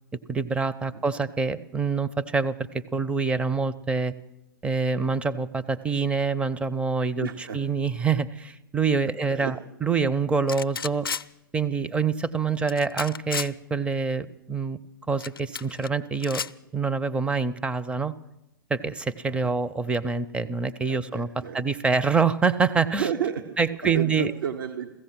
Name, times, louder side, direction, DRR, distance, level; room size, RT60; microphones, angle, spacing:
voice 1, 0.3-4.1 4.6-7.3 7.5-9.5 9.8-11.1 11.5-14.8 15.1-16.4 16.7-18.1 18.7-21.3 21.5-23.1 23.6-24.3, right 5 dB, 10° right, 11 dB, 0.6 m, -26 dB
voice 2, 7.2-7.6 9.0-9.5 19.3-19.5 20.9-21.6 22.9-24.9, right 8 dB, 70° right, 5 dB, 1.1 m, -32 dB
sound 1, 10.5-11.2 12.7-13.5 15.2-15.9 16.2-16.5, left 6 dB, 85° left, 0.4 m, -32 dB
16.0 x 14.5 x 5.9 m, 0.94 s
figure-of-eight pair, 110°, 12 cm